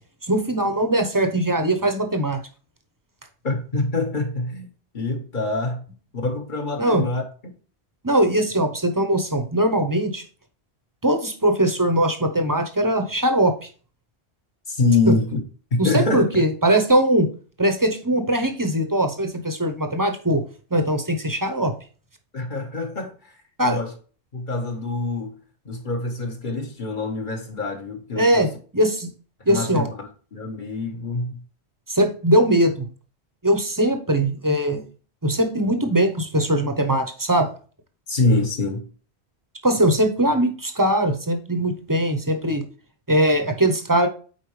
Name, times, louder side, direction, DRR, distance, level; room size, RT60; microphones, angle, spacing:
voice 1, 0.2-2.4 6.8-7.0 8.0-10.2 11.0-13.7 15.8-17.3 17.6-20.4 20.7-21.7 23.6-23.8 28.2-29.1 29.4-29.9 31.9-32.9 33.4-34.8 35.2-37.5 39.6-42.6 43.1-44.1, right 1 dB, 20° right, 0.8 m, -21 dB
voice 2, 3.4-4.7 4.9-5.8 6.2-7.2 14.7-15.4 15.7-16.4 22.3-23.3 23.6-23.9 24.3-25.3 25.6-28.5 29.5-31.4 38.1-38.8, left 3 dB, 45° left, 1.5 m, -25 dB
8.4 x 4.4 x 3.2 m
omnidirectional pair, 1.1 m